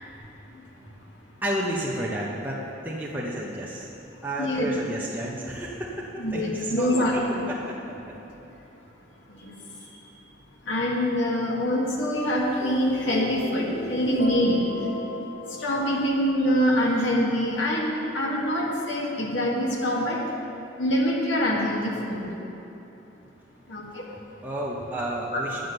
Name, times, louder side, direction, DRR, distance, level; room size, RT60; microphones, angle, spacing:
voice 1, 1.4-3.9 4.2-7.2 7.5-7.7 8.0-8.1 24.1-25.7, right 1 dB, 10° right, -5 dB, 0.9 m, -31 dB
voice 2, 4.4-4.7 6.2-7.5 9.4-9.5 10.7-14.6 15.6-17.9 18.1-20.2 20.8-22.3 23.7-24.1 25.3-25.4, equal, 75° left, -2 dB, 1.7 m, -25 dB
sound 1, 12.2-16.5, left 3 dB, 50° left, 1.1 m, -36 dB
10.0 x 7.8 x 6.7 m, 3.0 s
head